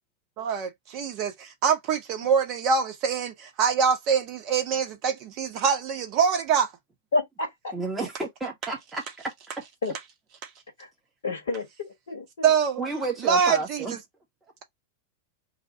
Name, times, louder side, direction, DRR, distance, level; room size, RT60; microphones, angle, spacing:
voice 1, 0.4-6.7 12.4-12.8 13.3-13.8, right 6 dB, 40° right, 0.9 m, -24 dB
voice 2, 7.1-7.7 9.8-9.9 10.8-10.9 11.2-12.5, left 3 dB, 65° left, 1.5 m, -30 dB
voice 3, 7.7-9.3 12.8-14.0, right 3 dB, 15° right, 1.0 m, -31 dB
2.9 x 2.3 x 4.2 m
figure-of-eight pair, 90°, 0 cm